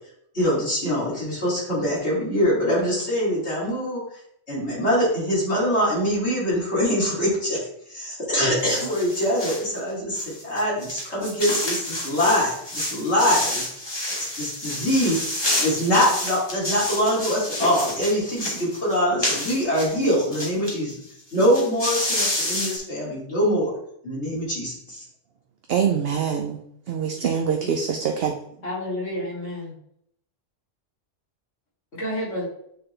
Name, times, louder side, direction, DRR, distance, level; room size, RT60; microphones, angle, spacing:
voice 1, 0.3-4.0 4.5-13.7 14.2-15.3 15.6-21.0 21.3-23.7 24.0-25.0, equal, 60° left, -8 dB, 2.9 m, -23 dB
sound 1, 8.6-9.7 10.1-20.7 21.0-21.1 21.3-22.8, left 1 dB, 20° left, 1.4 m, -29 dB
voice 2, 25.7-26.6 26.9-28.3, right 7 dB, 60° right, 4 dB, 0.7 m, -24 dB
voice 3, 28.6-29.7 31.9-32.4, left 1 dB, 80° left, -9 dB, 3.2 m, -30 dB
8.4 x 3.8 x 3.3 m, 0.71 s
omnidirectional pair, 1.3 m